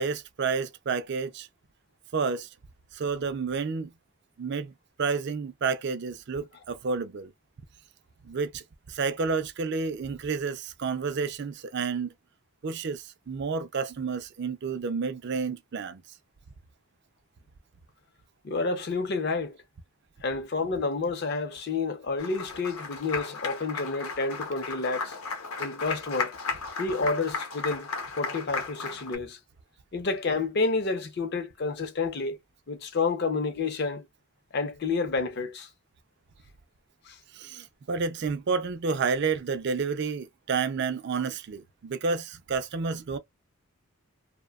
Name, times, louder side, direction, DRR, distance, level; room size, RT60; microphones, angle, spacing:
voice 1, 0.0-1.5 2.1-2.5 2.9-3.9 4.4-7.3 8.2-12.1 12.6-16.0 37.3-43.2, right 5 dB, 55° right, 0.4 m, -30 dB
voice 2, 18.4-19.6 20.2-25.2 25.6-26.3 26.8-27.9 28.2-29.4 29.9-32.4 32.7-34.1 34.5-35.7 37.1-37.2, left 3 dB, 50° left, 0.5 m, -29 dB
Applause, 22.2-29.2, left 4 dB, 90° left, 0.7 m, -35 dB
2.7 x 2.1 x 2.2 m
head